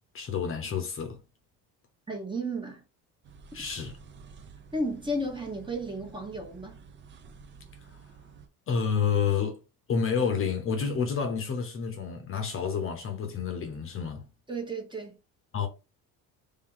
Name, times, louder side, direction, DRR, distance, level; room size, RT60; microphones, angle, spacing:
voice 1, 0.1-1.2 3.5-3.9 7.8-8.0 8.7-9.6 9.9-14.3 15.5-15.7, left 6 dB, 35° left, 0.8 m, -29 dB
voice 2, 2.1-2.8 4.7-6.8 14.5-15.2, right 1 dB, 15° right, 1.0 m, -33 dB
sound 1, 3.2-8.5, right 5 dB, 35° right, 0.6 m, -51 dB
3.4 x 2.8 x 3.8 m
cardioid pair, 145°, 35 cm